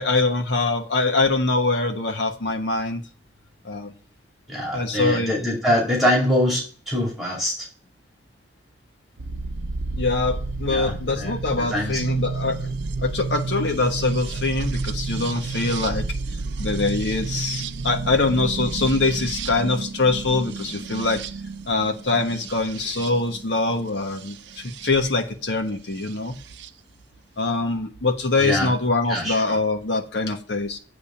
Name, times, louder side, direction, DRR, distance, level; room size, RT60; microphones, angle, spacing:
voice 1, 0.0-3.0 3.6-3.9 4.7-5.4 10.0-12.7 13.0-16.1 16.6-21.2 21.7-26.4 27.4-30.8, left 3 dB, 70° left, 5 dB, 1.1 m, -23 dB
voice 2, 4.5-7.7 10.7-11.3 11.7-12.0 28.4-28.7 29.1-29.3, left 1 dB, ahead, -4 dB, 2.5 m, -23 dB
sound 1, 9.2-24.9 26.1-26.7, right 4 dB, 75° right, 0.6 m, -31 dB
8.6 x 3.5 x 5.7 m, 0.41 s
head